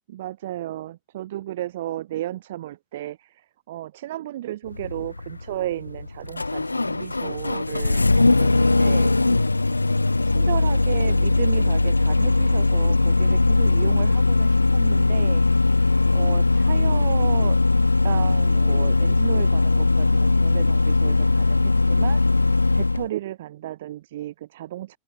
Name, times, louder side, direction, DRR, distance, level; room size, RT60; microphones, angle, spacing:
voice 1, 0.1-9.4 10.2-15.4 16.1-17.6 18.0-22.2 22.7-25.0, right 14 dB, 55° right, 7.2 m, -33 dB
Engine starting, 4.7-23.1, left 2 dB, 80° left, 1.4 m, -20 dB
open air
figure-of-eight pair, 90°, 0 cm